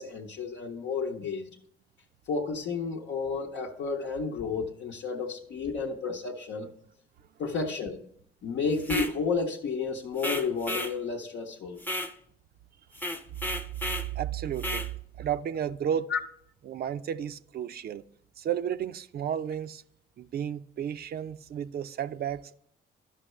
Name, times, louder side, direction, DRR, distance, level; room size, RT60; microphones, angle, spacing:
voice 1, 0.0-1.5 2.3-6.7 7.4-8.0 8.4-11.8 16.1-16.2, left 4 dB, 70° left, 0.8 m, -31 dB
sound 1, 8.8-9.2 10.2-11.0 11.8-12.1 12.9-14.1 14.6-14.9, left 1 dB, 10° left, 0.6 m, -33 dB
voice 2, 14.1-14.9 15.2-16.1 16.6-18.0 18.4-19.8 20.2-22.5, right 9 dB, 50° right, 0.4 m, -32 dB
12.5 x 5.5 x 3.1 m
cardioid pair, 90°, 20 cm